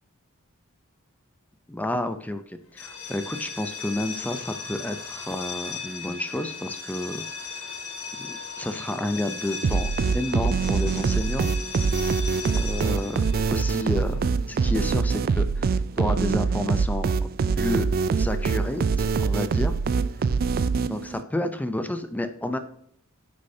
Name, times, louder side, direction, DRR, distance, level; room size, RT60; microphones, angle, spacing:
voice 1, 1.7-7.2 7.5-7.8 8.2-11.5 12.5-14.2 14.5-17.1 17.6-17.9 18.2-19.7 20.9-22.6, left 1 dB, 5° left, 9 dB, 0.5 m, -30 dB
sound 1, 2.7-14.4, left 5 dB, 75° left, 1.9 m, -37 dB
sound 2, 9.6-21.2, right 5 dB, 45° right, 0.3 m, -24 dB
9.6 x 6.5 x 2.8 m, 0.66 s
head